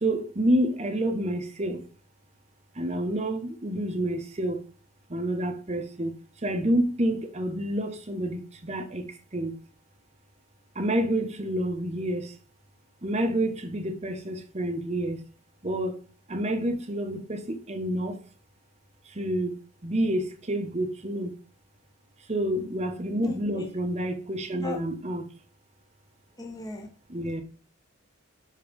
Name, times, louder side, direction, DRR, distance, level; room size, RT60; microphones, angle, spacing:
voice 1, 0.0-1.8 2.8-4.6 5.1-6.2 6.4-9.1 9.3-9.5 10.8-12.3 13.0-15.2 15.6-16.0 16.3-18.2 19.1-19.5 19.8-21.3 22.3-25.3 27.1-27.4, right 1 dB, 30° right, 0.8 m, -28 dB
voice 2, 23.2-23.7 24.6-24.8 26.4-26.9, left 2 dB, 20° left, 1.1 m, -37 dB
5.3 x 3.7 x 5.1 m
head